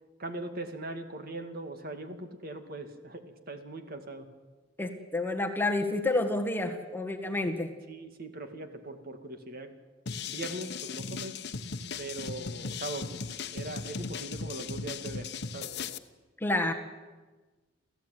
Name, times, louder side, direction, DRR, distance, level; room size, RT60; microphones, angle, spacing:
voice 1, 0.2-4.3 7.9-9.7 10.3-11.3 12.0-13.2 13.5-15.3 15.5-15.7, right 2 dB, 50° right, 7 dB, 2.2 m, -40 dB
voice 2, 4.8-7.8 16.4-16.7, left 2 dB, 10° left, 3 dB, 1.7 m, -29 dB
sound 1, 10.1-16.0, left 5 dB, 60° left, 1.0 m, -37 dB
28.5 x 15.0 x 9.3 m, 1.3 s
head